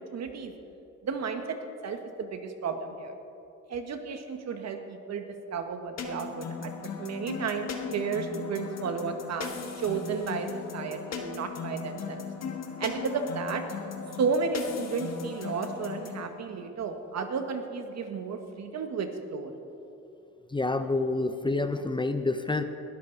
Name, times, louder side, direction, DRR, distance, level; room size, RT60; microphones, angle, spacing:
voice 1, 0.1-0.5 1.0-1.6 1.8-3.1 3.7-5.3 5.5-6.7 7.0-9.5 9.8-10.5 10.7-12.3 12.8-13.6 14.2-19.5, right 5 dB, 60° right, 6 dB, 1.5 m, -32 dB
sound 1, 6.0-16.3, left 6 dB, 60° left, 1.6 m, -38 dB
voice 2, 20.5-22.6, left 2 dB, 15° left, 9 dB, 0.7 m, -28 dB
20.5 x 13.0 x 4.0 m, 2.9 s
cardioid pair, 90°, 30 cm